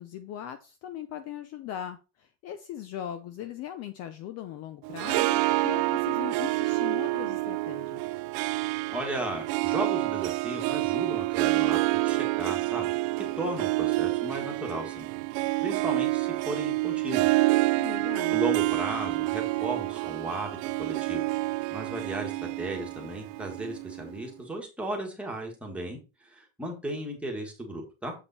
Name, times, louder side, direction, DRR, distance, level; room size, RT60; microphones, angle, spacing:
voice 1, 0.0-8.0 17.8-18.4, left 11 dB, 40° left, 10 dB, 0.6 m, -39 dB
Harp, 4.8-24.2, right 21 dB, 70° right, 0.5 m, -28 dB
voice 2, 8.9-12.9 13.4-15.1 15.6-17.4 18.3-20.5 20.8-21.3 21.7-22.3 22.6-26.0 26.3-28.1, right 1 dB, 5° right, 0 dB, 1.6 m, -35 dB
7.3 x 5.0 x 4.1 m, 0.30 s
cardioid pair, 170°, 38 cm